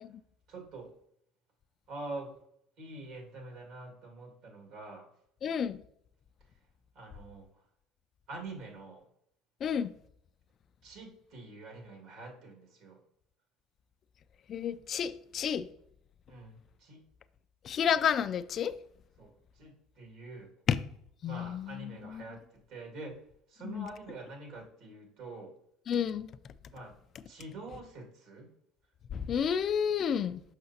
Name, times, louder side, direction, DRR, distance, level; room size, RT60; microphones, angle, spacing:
voice 1, 0.5-0.9 1.9-2.3 2.8-5.1 6.9-7.5 8.3-9.1 10.8-13.0 16.3-17.0 19.2-20.5 21.2-23.2 23.5-25.6 26.7-27.0 27.3-28.5, right 2 dB, 65° right, 2.0 m, -45 dB
voice 2, 5.4-5.8 9.6-9.9 14.5-15.7 17.6-18.8 20.7-20.8 21.2-22.2 23.6-23.9 25.9-26.3 29.1-30.4, left 8 dB, 45° left, 0.3 m, -30 dB
6.5 x 5.6 x 2.8 m
supercardioid pair, 90°, 0 cm